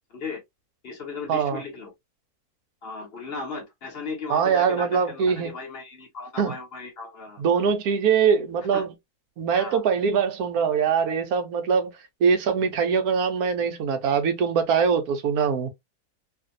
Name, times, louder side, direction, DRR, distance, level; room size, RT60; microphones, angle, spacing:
voice 1, 0.1-0.4 0.8-1.9 2.8-7.7 8.7-8.9 9.5-9.8, left 4 dB, 45° left, 1.0 m, -36 dB
voice 2, 1.3-1.6 4.3-5.5 6.4-6.5 7.4-8.9 9.4-11.9 12.2-15.7, right 6 dB, 75° right, 1.1 m, -22 dB
2.7 x 2.5 x 2.5 m
omnidirectional pair, 1.6 m